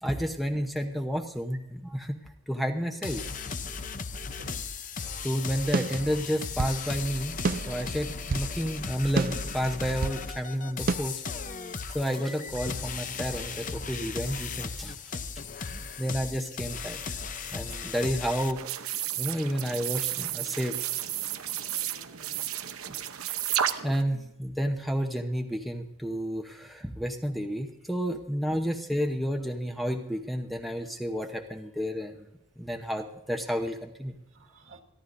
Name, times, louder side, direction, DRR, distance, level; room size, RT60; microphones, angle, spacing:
voice 1, 0.0-2.2 2.5-3.2 5.2-7.4 7.7-11.2 11.9-14.9 15.7-17.1 17.5-18.6 19.2-20.7 23.8-32.1 32.6-34.2, equal, ahead, 3 dB, 0.8 m, -31 dB
sound 1, 3.0-18.5, left 5 dB, 35° left, 0.7 m, -36 dB
sound 2, 5.7-6.8 7.4-8.5 9.2-10.2 10.9-11.0, right 4 dB, 40° right, 0.4 m, -30 dB
sound 3, 18.5-24.0, right 10 dB, 90° right, 0.9 m, -32 dB
voice 2, 21.7-22.4 24.1-24.3 34.3-34.8, right 2 dB, 75° right, 2 dB, 1.8 m, -53 dB
28.0 x 11.5 x 2.6 m, 0.87 s
head